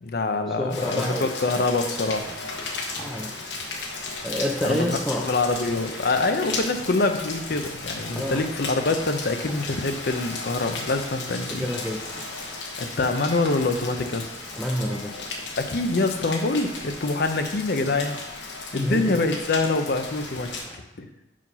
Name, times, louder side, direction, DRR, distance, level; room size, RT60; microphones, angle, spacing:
voice 1, 0.0-2.3 4.6-11.6 12.8-14.3 15.6-20.5 21.0-21.1, left 3 dB, 60° left, 7 dB, 0.6 m, -25 dB
voice 2, 0.6-1.7 3.0-3.3 4.2-5.2 8.2-8.4 11.6-12.0 14.6-15.2 18.7-19.2, equal, ahead, -2 dB, 0.5 m, -28 dB
Rain, 0.7-20.7, left 3 dB, 80° left, 1.0 m, -35 dB
sound 1, 1.9-20.8, left 1 dB, 30° left, 1.4 m, -46 dB
5.6 x 5.1 x 5.4 m, 0.96 s
head